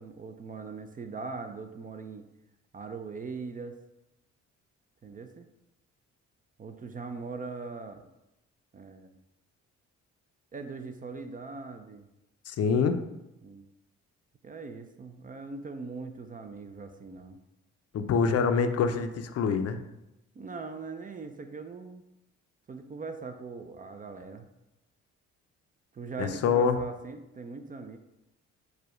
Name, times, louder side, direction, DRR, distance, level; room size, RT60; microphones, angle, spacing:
voice 1, 0.0-2.3 2.7-3.8 5.0-5.5 6.6-8.1 8.7-9.1 10.5-12.1 13.4-13.6 14.4-17.4 20.3-22.0 22.7-24.5 25.9-28.0, right 4 dB, 30° right, 7 dB, 0.4 m, -41 dB
voice 2, 12.5-13.1 17.9-19.8 26.2-26.8, left 5 dB, 55° left, 8 dB, 0.5 m, -25 dB
4.8 x 2.2 x 4.8 m, 0.90 s
cardioid pair, 90°, 30 cm